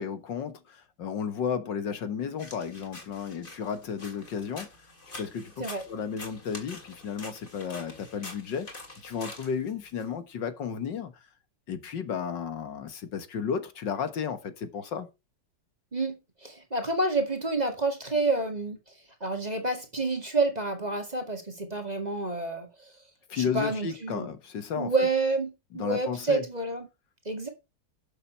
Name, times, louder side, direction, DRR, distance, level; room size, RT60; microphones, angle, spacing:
voice 1, 0.0-4.7 5.2-5.5 5.9-8.7 9.0-11.2 11.7-15.1 23.3-24.9 25.7-26.4, left 7 dB, 70° left, 2.1 m, -33 dB
Tijeras corta papel, 2.4-10.0, left 2 dB, 25° left, 2.8 m, -46 dB
voice 2, 15.9-18.8 19.2-22.9 23.3-24.3 24.8-26.9 27.3-27.5, right 3 dB, 20° right, 2.0 m, -29 dB
12.0 x 7.2 x 4.5 m
omnidirectional pair, 2.0 m